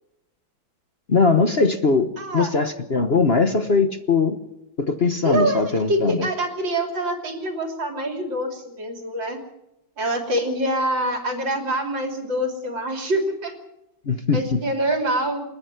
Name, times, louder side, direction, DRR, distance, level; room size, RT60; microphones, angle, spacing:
voice 1, 1.1-4.4 4.8-6.3 14.1-14.6, left 4 dB, 35° left, 8 dB, 1.2 m, -20 dB
voice 2, 2.2-2.5 5.2-9.4 10.0-13.5 14.3-15.4, right 1 dB, 65° right, 4 dB, 3.7 m, -25 dB
29.0 x 10.5 x 9.7 m, 0.88 s
omnidirectional pair, 2.1 m